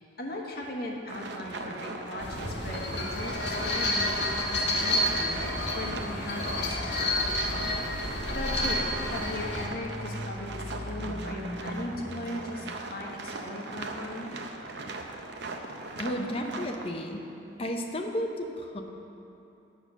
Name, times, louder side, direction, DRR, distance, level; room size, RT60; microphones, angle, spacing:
voice 1, 0.2-7.2 8.3-14.3, left 1 dB, 55° left, -1 dB, 1.3 m, -38 dB
sound 1, 1.1-16.9, right 2 dB, 70° right, 0.7 m, -40 dB
sound 2, 2.2-9.7, left 1 dB, 70° left, 1.3 m, -30 dB
sound 3, 6.8-12.1, equal, 50° right, 1.7 m, -39 dB
voice 2, 16.0-17.3 17.6-18.8, equal, 30° left, 3 dB, 0.7 m, -33 dB
8.8 x 6.6 x 6.2 m, 2.8 s
head